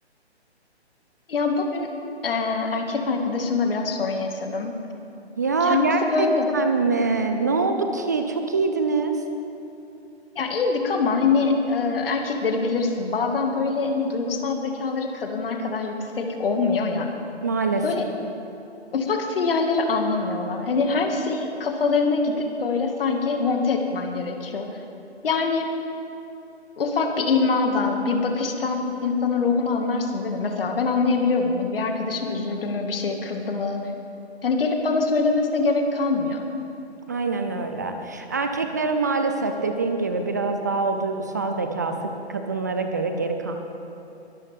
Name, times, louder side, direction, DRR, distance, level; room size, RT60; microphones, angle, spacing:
voice 1, 1.3-1.9 2.2-4.7 5.6-6.5 10.4-17.1 17.8-18.1 18.9-24.7 25.2-25.7 26.8-33.8 34.4-36.4, left 4 dB, 55° left, 3 dB, 2.0 m, -24 dB
voice 2, 5.4-6.3 6.5-9.1 17.4-18.1 37.1-42.0 42.3-43.6, right 4 dB, 15° right, 5 dB, 0.4 m, -24 dB
22.5 x 12.5 x 3.6 m, 2.8 s
figure-of-eight pair, 140°, 33 cm